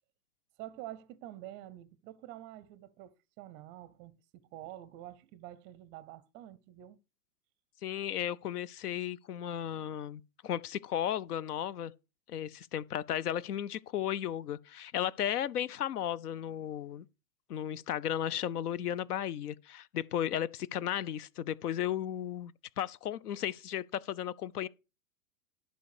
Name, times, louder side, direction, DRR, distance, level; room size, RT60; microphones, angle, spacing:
voice 1, 0.6-7.0, right 14 dB, 25° right, 0.5 m, -48 dB
voice 2, 7.8-11.9 12.3-17.1 17.5-24.7, left 10 dB, 80° left, 0.7 m, -35 dB
11.5 x 5.6 x 4.8 m
hypercardioid pair, 115°, 46 cm